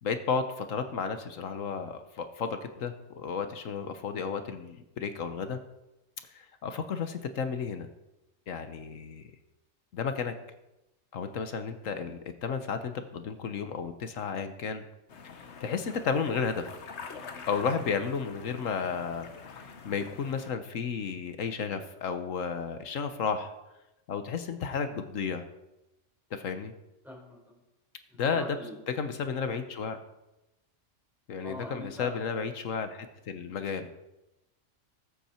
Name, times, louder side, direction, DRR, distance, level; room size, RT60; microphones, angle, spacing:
voice 1, 0.0-5.6 6.3-7.9 8.5-9.2 9.9-10.3 11.1-14.8 15.6-16.7 17.5-19.3 19.5-23.5 24.1-25.4 26.3-26.7 28.2-28.4 28.9-30.0 31.3-33.9, left 6 dB, 80° left, 8 dB, 1.4 m, -33 dB
sound 1, 15.1-20.5, left 5 dB, 60° left, 1.3 m, -46 dB
voice 2, 27.0-27.6 28.1-28.7 31.4-32.2, equal, ahead, -2 dB, 4.6 m, -43 dB
19.5 x 8.3 x 4.5 m, 0.95 s
omnidirectional pair, 1.3 m